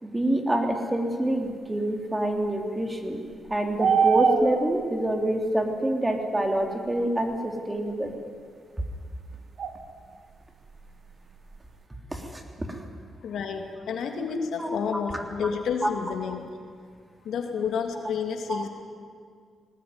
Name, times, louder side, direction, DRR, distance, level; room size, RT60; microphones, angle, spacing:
voice 1, 0.0-3.2 3.5-8.1 12.1-12.8 14.6-15.2 15.8-15.9 18.5-18.6, right 1 dB, 15° right, 3 dB, 3.2 m, -27 dB
sound 1, 3.3-4.9 7.3-7.4 9.6-10.0 10.3-10.4 10.7-11.6, right 6 dB, 65° right, 1.6 m, -24 dB
voice 2, 13.2-16.5 17.2-18.7, left 6 dB, 80° left, 4 dB, 2.6 m, -30 dB
20.0 x 18.5 x 9.7 m, 2.1 s
cardioid pair, 90°, 0 cm